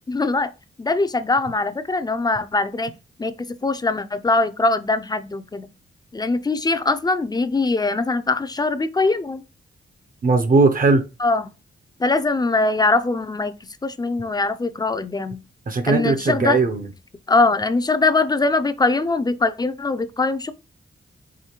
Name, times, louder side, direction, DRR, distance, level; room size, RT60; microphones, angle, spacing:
voice 1, 0.1-0.5 0.8-2.9 3.2-5.7 6.1-9.4 11.2-11.5 12.0-13.5 13.8-15.4 15.9-16.6 17.3-20.5, left 3 dB, 20° left, 0.4 m, -22 dB
voice 2, 10.2-11.0 15.7-16.9, right 3 dB, 45° right, 0.6 m, -18 dB
4.9 x 3.1 x 2.9 m
cardioid pair, 90°, 20 cm